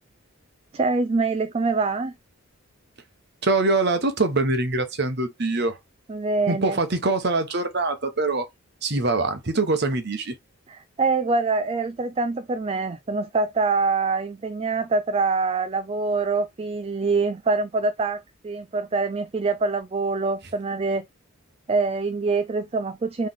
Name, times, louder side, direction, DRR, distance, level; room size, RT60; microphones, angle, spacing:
voice 1, 0.7-2.1 6.1-6.8 10.7-21.0 21.7-23.3, right 3 dB, 25° right, 0.3 m, -25 dB
voice 2, 3.4-5.8 6.5-8.4 8.8-10.3, right 3 dB, 50° right, 0.9 m, -23 dB
3.9 x 3.1 x 3.7 m
head